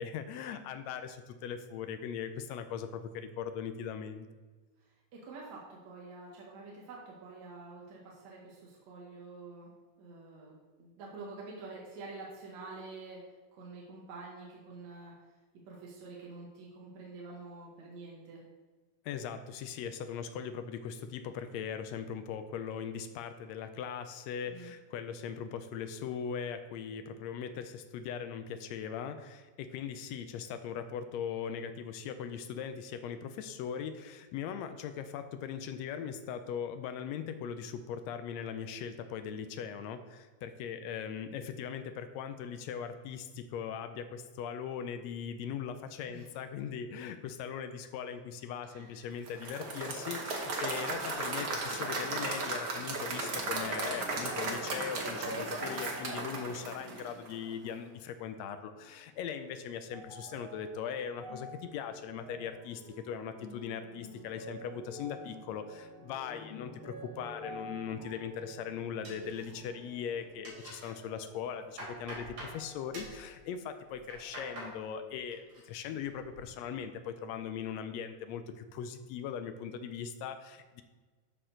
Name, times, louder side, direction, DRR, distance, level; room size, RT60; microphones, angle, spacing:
voice 1, 0.0-4.3 19.0-80.8, left 7 dB, 80° left, 9 dB, 1.6 m, -40 dB
voice 2, 4.8-9.7 10.0-15.1 15.7-18.4 24.5-24.7 46.1-46.3 48.6-49.3, right 3 dB, 70° right, -3 dB, 2.5 m, -48 dB
Applause / Crowd, 49.3-57.4, right 3 dB, 85° right, 0.8 m, -36 dB
sound 1, 58.7-72.2 72.5-73.5 74.2-74.3, equal, 50° left, 1.9 m, -50 dB
sound 2, 69.0-69.9 70.2-70.9 71.4-72.6 72.9-73.2 73.9-74.7 75.1-75.6 76.0-76.4, right 1 dB, 45° right, 3.6 m, -46 dB
13.0 x 4.4 x 3.8 m, 1.3 s
omnidirectional pair, 3.5 m